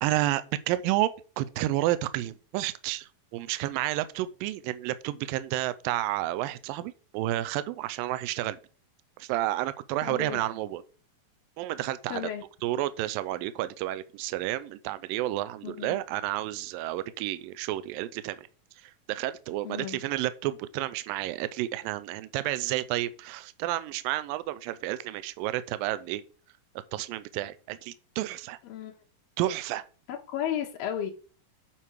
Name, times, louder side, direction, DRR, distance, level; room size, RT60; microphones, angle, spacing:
voice 1, 0.0-8.6 9.2-10.8 11.6-12.2 12.6-18.5 18.8-26.2 26.9-28.6 29.4-29.8, right 15 dB, 85° right, 2.3 m, -31 dB
voice 2, 10.0-10.4 12.1-12.4 15.6-16.0 19.6-20.0 28.6-28.9 30.1-31.1, left 10 dB, 80° left, 2.8 m, -33 dB
8.9 x 4.6 x 6.3 m
omnidirectional pair, 4.1 m